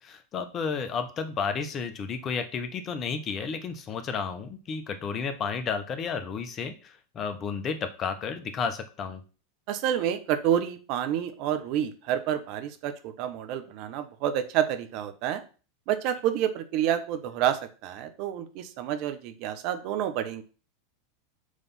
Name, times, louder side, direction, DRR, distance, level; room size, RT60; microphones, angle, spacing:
voice 1, 0.0-9.2, left 5 dB, 35° left, 9 dB, 1.1 m, -32 dB
voice 2, 9.7-15.4 15.9-20.4, right 10 dB, 55° right, 9 dB, 1.1 m, -29 dB
6.5 x 3.6 x 5.5 m, 0.36 s
hypercardioid pair, 95°, 0 cm